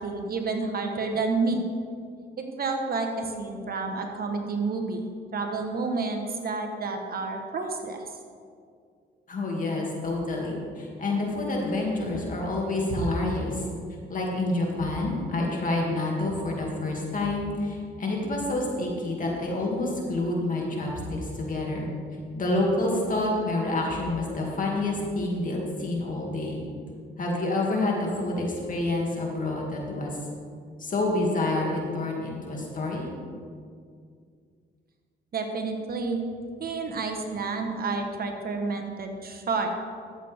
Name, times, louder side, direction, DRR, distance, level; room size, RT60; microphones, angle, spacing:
voice 1, 0.0-1.6 2.4-5.0 5.3-8.1 35.3-36.2 36.6-39.7, right 4 dB, 50° right, 3 dB, 1.2 m, -30 dB
voice 2, 9.3-13.6 14.1-21.9 22.3-26.6 27.2-30.1 30.8-33.1, left 2 dB, 40° left, -2 dB, 2.3 m, -28 dB
12.5 x 7.9 x 3.5 m, 2.2 s
cardioid pair, 90°, 20 cm